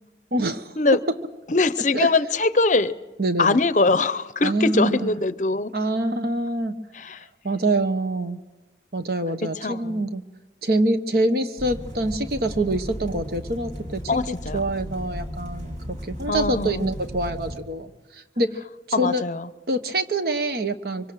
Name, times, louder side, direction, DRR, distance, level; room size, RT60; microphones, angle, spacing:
voice 1, 0.3-0.8 1.1-1.2 1.9-2.1 3.2-3.6 4.4-5.2 5.7-6.8 7.4-8.4 8.9-10.2 10.6-14.0 14.3-15.7 16.0-19.2 19.7-21.1, right 1 dB, 55° right, 9 dB, 1.2 m, -25 dB
voice 2, 1.5-2.9 3.4-5.7 7.0-7.2 9.6-10.0 14.1-14.6 16.3-16.9 18.9-19.5, left 3 dB, 40° left, 14 dB, 0.7 m, -22 dB
sound 1, 11.6-17.6, equal, 40° right, 3.5 m, -35 dB
24.5 x 24.5 x 6.3 m, 1.1 s
head